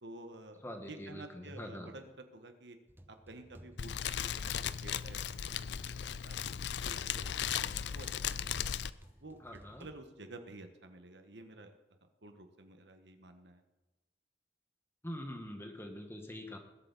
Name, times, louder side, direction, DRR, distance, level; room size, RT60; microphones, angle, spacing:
voice 1, 0.0-0.6 0.9-2.8 3.1-5.7 6.1-6.5 6.8-8.8 9.2-13.6, right 2 dB, 80° right, 7 dB, 1.4 m, -52 dB
voice 2, 0.6-1.9 9.4-9.9 15.0-16.6, equal, 15° left, 4 dB, 1.5 m, -44 dB
sound 1, 2.9-10.1, equal, 10° right, 0.7 m, -56 dB
Fire, 3.8-8.9, left 9 dB, 80° left, 0.5 m, -37 dB
Water / Splash splatter, 4.0-9.8, left 3 dB, 65° left, 5.1 m, -68 dB
20.5 x 8.2 x 4.2 m, 1.1 s
head